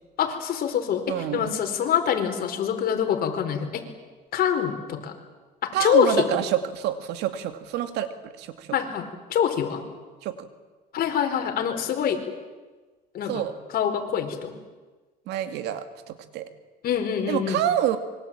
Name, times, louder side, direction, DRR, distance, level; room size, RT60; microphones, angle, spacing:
voice 1, 0.2-3.9 4.3-5.1 5.6-6.3 8.7-9.8 10.9-12.2 13.1-13.4 13.7-14.5 16.8-17.6, left 8 dB, 60° left, 5 dB, 4.6 m, -25 dB
voice 2, 1.1-1.5 5.7-8.7 10.2-10.5 13.3-13.5 15.3-16.5 17.3-18.0, right 11 dB, 90° right, 9 dB, 2.4 m, -27 dB
25.5 x 23.5 x 8.9 m, 1.3 s
cardioid pair, 110°, 17 cm